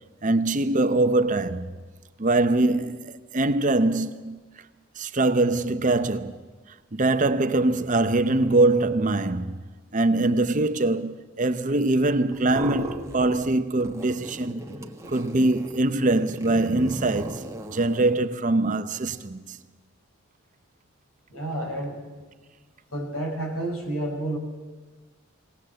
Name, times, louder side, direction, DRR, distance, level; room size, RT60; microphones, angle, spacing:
voice 1, 0.2-1.7 2.2-4.4 5.0-6.4 6.9-9.6 9.9-14.6 15.1-19.6, right 2 dB, 35° right, 0.7 m, -23 dB
sound 1, 12.3-13.5 13.8-18.1, right 1 dB, 15° right, 1.3 m, -37 dB
voice 2, 21.3-22.1 22.9-24.4, right 1 dB, 75° left, 5.7 m, -30 dB
21.5 x 18.0 x 7.8 m
head